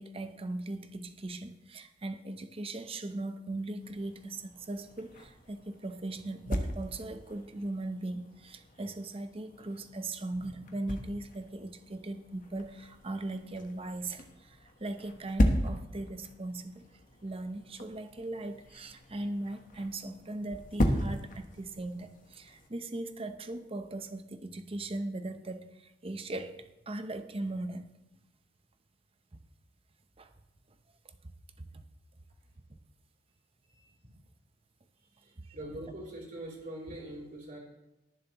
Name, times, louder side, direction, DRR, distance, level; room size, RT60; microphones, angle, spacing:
voice 1, 0.0-16.9 17.2-27.9 30.2-30.3 31.0-31.1 31.6-31.8 35.4-35.6 35.8-35.9, right 2 dB, 30° right, 9 dB, 0.8 m, -39 dB
sound 1, 3.8-22.7, equal, 50° left, 1.2 m, -37 dB
voice 2, 35.5-37.6, right 1 dB, 50° right, -7 dB, 3.7 m, -42 dB
20.5 x 7.2 x 3.0 m, 0.95 s
head